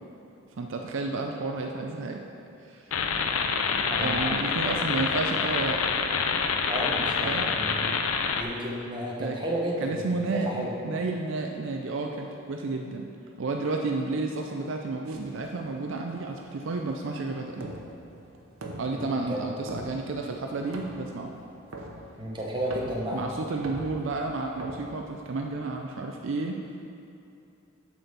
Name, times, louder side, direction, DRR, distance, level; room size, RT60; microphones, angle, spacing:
voice 1, 0.5-2.2 2.6-3.0 4.0-5.8 7.2-7.5 9.2-9.4 9.8-10.5 10.8-13.1 13.4-17.7 18.8-21.3 23.1-26.6, right 3 dB, 65° right, 2 dB, 0.5 m, -31 dB
sound 1, 2.9-8.4, left 5 dB, 80° left, 0.5 m, -27 dB
voice 2, 3.9-4.3 6.7-8.0 8.4-10.0 10.3-10.7 18.9-19.4 22.2-23.3, equal, 20° right, -3 dB, 1.0 m, -32 dB
sound 2, 15.1-25.7, right 1 dB, 85° right, 0.9 m, -44 dB
7.8 x 4.2 x 6.7 m, 2.8 s
head